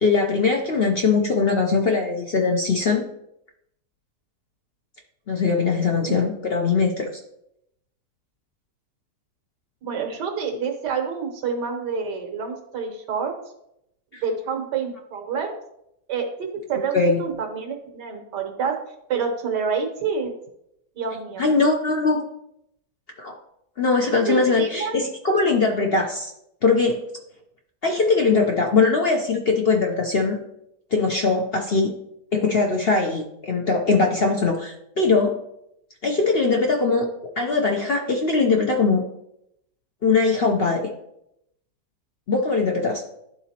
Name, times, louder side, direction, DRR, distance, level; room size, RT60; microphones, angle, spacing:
voice 1, 0.0-3.1 5.3-7.1 14.1-14.2 16.9-17.2 21.4-22.2 23.2-23.4 23.8-26.3 26.6-27.0 27.8-30.4 30.9-31.9 32.3-35.4 36.0-37.1 37.4-39.0 40.0-40.9 42.3-43.0, left 4 dB, 55° left, 1 dB, 0.7 m, -21 dB
voice 2, 9.8-13.3 14.2-15.6 16.1-18.8 19.1-20.3 21.0-21.5 24.3-25.0, right 5 dB, 90° right, 4 dB, 1.7 m, -28 dB
12.0 x 4.0 x 2.9 m, 0.79 s
omnidirectional pair, 1.8 m